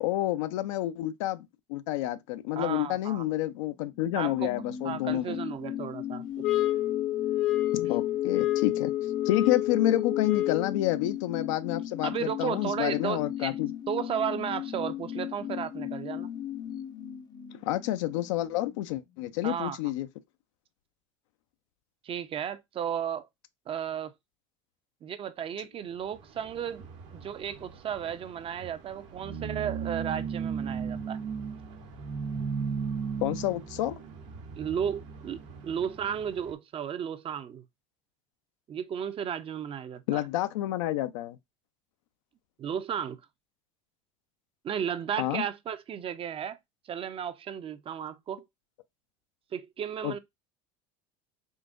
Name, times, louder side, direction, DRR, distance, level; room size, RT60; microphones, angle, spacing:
voice 1, 0.0-5.4 7.7-8.9 9.3-13.7 17.6-20.1 33.2-34.0 40.1-41.4 45.2-45.4 50.0-50.2, left 14 dB, 80° left, 0.5 m, -29 dB
voice 2, 2.6-3.2 4.1-4.5 4.8-6.4 12.0-13.6 13.9-16.3 19.4-19.8 22.0-23.3 23.7-24.1 25.0-26.9 27.2-31.2 34.6-37.6 38.7-40.2 42.6-43.2 44.6-46.6 46.9-48.5 49.5-50.2, right 8 dB, 35° right, 0.5 m, -34 dB
sound 1, 3.7-19.0 19.3-19.4, left 10 dB, 25° left, 0.5 m, -37 dB
sound 2, 6.4-10.8, left 14 dB, 55° left, 0.8 m, -28 dB
sound 3, 26.1-36.5, right 6 dB, 80° right, 1.2 m, -37 dB
3.8 x 2.6 x 2.4 m
hypercardioid pair, 90°, 16 cm